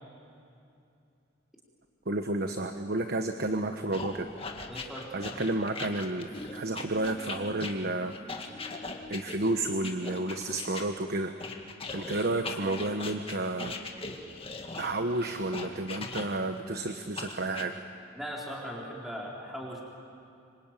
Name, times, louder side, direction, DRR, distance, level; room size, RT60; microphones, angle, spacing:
voice 1, 2.0-4.3 5.1-8.1 9.1-11.3 11.9-13.7 14.8-17.7, right 2 dB, 55° right, 6 dB, 1.1 m, -31 dB
sound 1, 3.9-10.8 11.4-16.6 17.2-17.7, left 3 dB, 30° left, 1.9 m, -40 dB
voice 2, 4.7-5.1 18.1-19.8, equal, ahead, -3 dB, 4.1 m, -39 dB
Human voice, 6.2-11.2, left 1 dB, 25° right, 7.6 m, -51 dB
26.0 x 24.5 x 9.1 m, 2.6 s
head